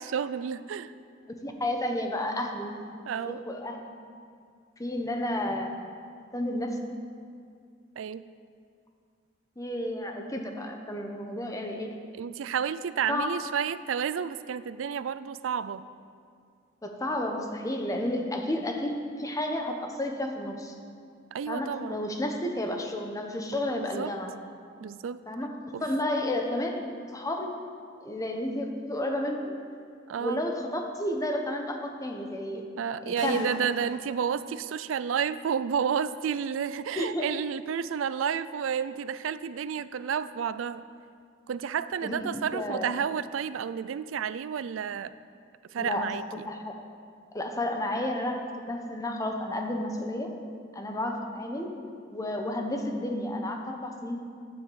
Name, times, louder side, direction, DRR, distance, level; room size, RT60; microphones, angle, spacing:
voice 1, 0.1-0.9 3.1-3.4 8.0-8.2 12.1-15.8 21.3-22.0 23.7-24.1 24.8-25.2 25.7-25.8 30.1-30.4 32.8-40.8 41.5-45.1 45.7-46.5, right 7 dB, 80° right, 14 dB, 0.4 m, -31 dB
voice 2, 1.4-2.7 3.3-3.8 4.8-5.7 6.3-6.8 9.6-11.9 13.1-13.4 16.8-20.7 21.5-24.3 25.3-26.8 27.1-27.5 28.0-29.6 30.2-32.7 33.1-33.6 37.0-37.3 42.0-42.9 45.8-46.7 47.3-50.3 50.7-51.8 52.1-54.2, left 1 dB, 15° left, 3 dB, 1.0 m, -31 dB
sound 1, 33.2-35.3, left 2 dB, 65° left, 1.5 m, -48 dB
9.9 x 7.2 x 8.0 m, 2.3 s
head